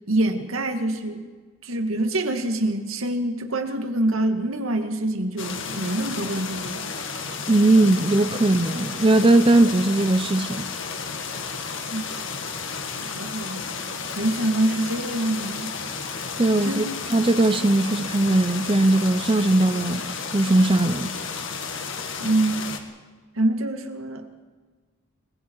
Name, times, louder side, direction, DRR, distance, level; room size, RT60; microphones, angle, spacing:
voice 1, 0.1-1.3 1.6-6.9 11.9-12.1 13.0-13.6 14.2-15.7 16.6-16.9 22.2-22.8 23.4-24.3, right 1 dB, 80° right, 2.1 m, -25 dB
sound 1, 5.4-22.8, left 5 dB, 65° left, 2.0 m, -32 dB
voice 2, 7.5-10.7 16.4-16.8 17.1-20.1 20.3-21.1, right 2 dB, 25° right, 0.7 m, -19 dB
29.5 x 21.5 x 4.7 m
head